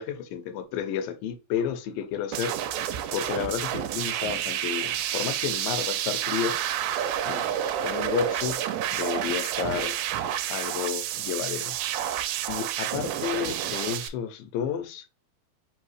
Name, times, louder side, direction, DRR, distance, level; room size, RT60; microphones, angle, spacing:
voice 1, 0.0-2.5 3.1-6.6 6.9-7.5 7.8-8.6 8.9-10.0 10.5-11.7 12.5-15.1, left 8 dB, 80° left, 2.2 m, -31 dB
sound 1, 2.3-14.1, right 11 dB, 90° right, 2.4 m, -29 dB
5.4 x 2.7 x 3.2 m
omnidirectional pair, 4.2 m